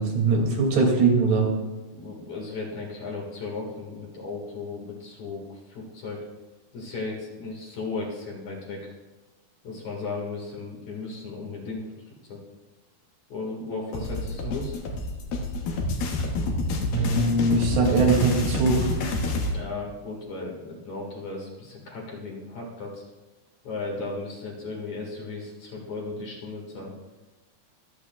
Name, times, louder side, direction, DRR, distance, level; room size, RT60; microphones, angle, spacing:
voice 1, 0.0-1.5 16.9-18.9, right 3 dB, 90° right, -2 dB, 4.6 m, -21 dB
voice 2, 1.9-6.2 6.7-8.9 9.6-11.8 12.3-12.4 13.3-14.8 19.5-23.0 23.6-26.9, left 3 dB, 50° left, -2 dB, 2.7 m, -35 dB
sound 1, 13.9-19.5, left 2 dB, 70° left, 3.0 m, -28 dB
24.5 x 8.3 x 2.3 m, 1.1 s
omnidirectional pair, 4.6 m